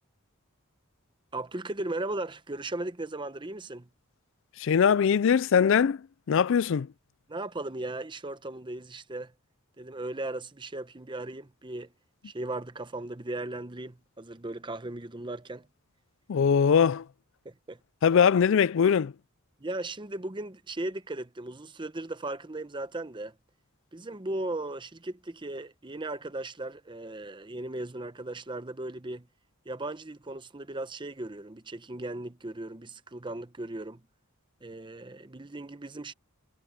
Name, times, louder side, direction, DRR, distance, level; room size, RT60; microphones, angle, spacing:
voice 1, 1.3-3.9 7.3-9.3 9.8-11.9 12.2-15.7 17.4-17.8 19.6-23.3 23.9-29.3 29.6-34.0 34.6-36.1, right 2 dB, 20° right, 0.8 m, -37 dB
voice 2, 4.6-6.9 16.3-17.1 18.0-19.1, left 7 dB, 60° left, 0.4 m, -22 dB
head